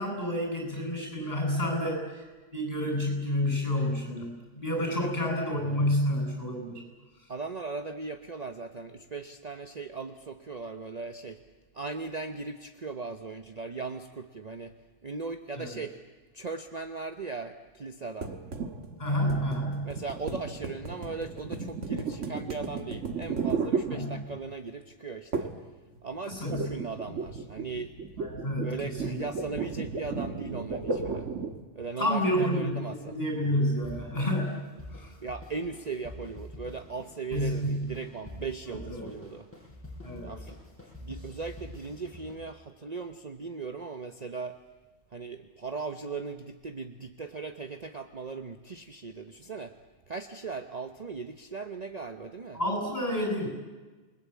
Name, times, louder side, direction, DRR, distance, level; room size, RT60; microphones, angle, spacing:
voice 1, 0.0-2.3 2.5-4.3 4.5-6.8 15.6-15.8 19.0-19.9 23.9-24.2 26.3-26.6 28.2-29.2 32.0-32.7 33.1-34.7 34.9-35.1 37.3-37.9 38.7-39.1 40.0-40.3 52.5-53.5, equal, 30° left, 2 dB, 8.0 m, -29 dB
voice 2, 7.3-11.4 11.7-14.8 15.0-16.0 16.3-18.3 19.8-25.5 26.0-28.0 28.6-31.3 31.7-33.1 35.2-39.5 40.2-40.6 41.0-44.6 45.1-49.7 50.1-52.6, right 4 dB, 35° right, 7 dB, 1.0 m, -38 dB
sound 1, 18.2-24.5 25.3-25.7 26.0-31.7, right 4 dB, 80° right, 1.8 m, -34 dB
sound 2, 33.8-42.4, left 1 dB, 10° left, 7.4 m, -46 dB
28.5 x 20.5 x 8.3 m, 1.3 s
omnidirectional pair, 1.3 m